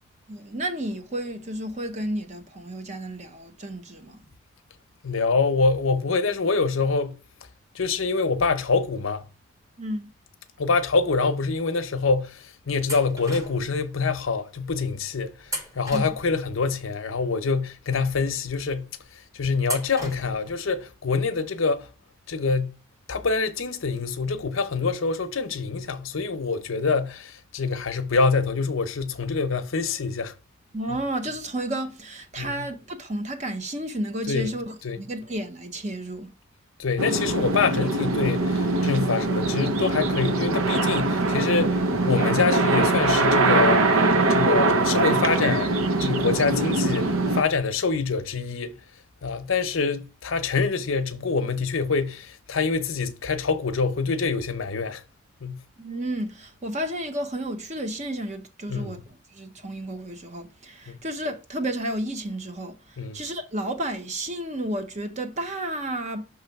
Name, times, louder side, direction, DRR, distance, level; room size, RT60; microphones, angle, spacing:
voice 1, 0.3-4.2 9.8-10.1 15.9-16.1 30.7-36.3 55.8-59.0 59.3-66.3, right 1 dB, 35° right, 0.8 m, -32 dB
voice 2, 5.0-7.2 7.7-9.3 10.6-18.9 19.3-21.9 22.3-22.8 23.1-30.3 30.9-31.0 32.4-32.6 34.3-34.5 34.8-35.0 36.8-41.8 42.0-43.9 44.3-48.8 49.2-55.0 55.4-55.6 58.7-58.9 60.9-61.0 63.0-63.2, left 4 dB, 75° left, 0.7 m, -25 dB
sound 1, 12.9-13.8 15.4-16.6 19.6-20.5, right 1 dB, 15° right, 1.2 m, -36 dB
sound 2, 37.0-47.4, right 2 dB, 80° right, 0.7 m, -22 dB
6.0 x 3.2 x 5.8 m
head